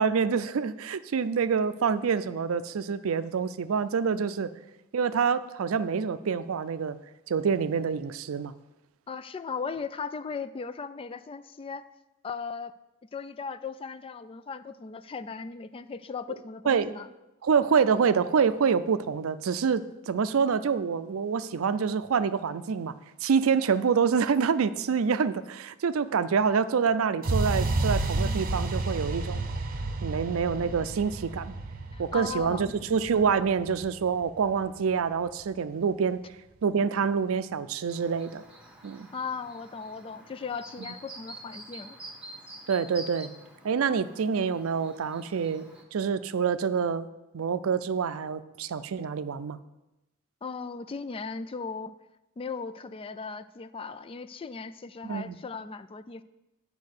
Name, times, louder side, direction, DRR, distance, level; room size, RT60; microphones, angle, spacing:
voice 1, 0.0-4.5 4.9-7.0 7.3-8.5 16.7-16.9 17.4-22.9 23.2-29.4 30.0-31.5 32.0-36.2 36.6-38.4 38.8-39.1 42.7-43.3 43.6-47.1 47.3-49.6 55.0-55.4, right 6 dB, 80° right, 13 dB, 0.4 m, -26 dB
voice 2, 9.1-11.9 12.2-12.7 13.1-17.1 31.9-32.8 39.1-42.0 50.4-51.9 52.4-56.2, left 5 dB, 25° left, 13 dB, 0.3 m, -37 dB
sound 1, 27.2-35.2, right 2 dB, 45° right, 0.7 m, -31 dB
Chirp tweet, 37.9-45.8, right 1 dB, 5° right, 1.1 m, -47 dB
8.5 x 5.2 x 6.5 m, 0.96 s
head